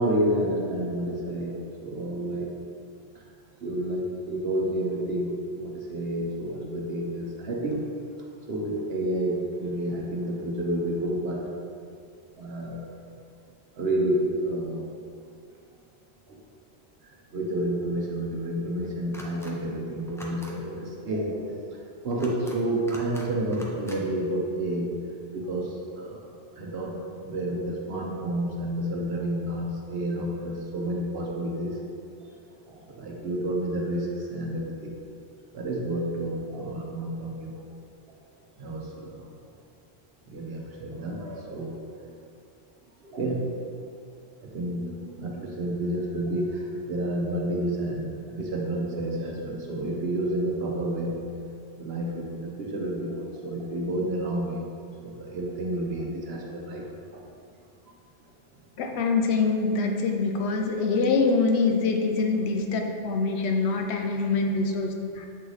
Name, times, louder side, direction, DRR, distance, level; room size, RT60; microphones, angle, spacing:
voice 1, 0.0-2.5 3.1-3.2 3.6-5.3 5.5-7.8 8.5-11.4 12.4-12.9 13.7-15.1 16.3-16.4 17.0-21.4 21.7-24.9 25.3-31.8 32.5-34.9 35.5-37.5 38.6-39.3 40.3-42.1 43.0-43.5 44.4-51.1 51.8-57.2, right 1 dB, 70° right, -1 dB, 1.1 m, -30 dB
sound 1, 19.1-19.5 20.1-20.5 22.1-22.6 22.9-23.3 23.5-24.0, equal, 5° left, 0.4 m, -43 dB
voice 2, 58.8-65.3, left 4 dB, 80° left, 3 dB, 0.9 m, -25 dB
7.9 x 3.2 x 4.0 m, 2.4 s
omnidirectional pair, 1.1 m